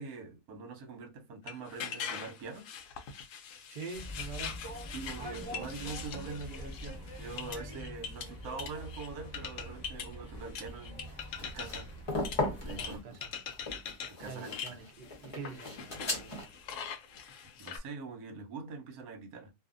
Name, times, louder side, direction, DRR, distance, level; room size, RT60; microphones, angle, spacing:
voice 1, 0.0-2.7 4.9-11.1 11.4-11.9 12.6-13.2 14.1-14.8 17.6-19.5, right 4 dB, 65° right, 1.1 m, -44 dB
sound 1, 1.5-9.1 9.3-10.2 10.6-12.0 12.2-12.9 13.2-14.1 14.4-17.8, left 7 dB, 70° left, 0.7 m, -42 dB
voice 2, 3.7-4.5 5.2-5.3 5.6-5.7 12.8-13.1 14.3-16.5, right 5 dB, 90° right, 0.4 m, -45 dB
sound 2, 3.9-13.0, equal, 30° right, 0.9 m, -44 dB
sound 3, 11.1-16.4, left 2 dB, 35° left, 0.5 m, -37 dB
2.7 x 2.4 x 2.4 m
omnidirectional pair, 1.8 m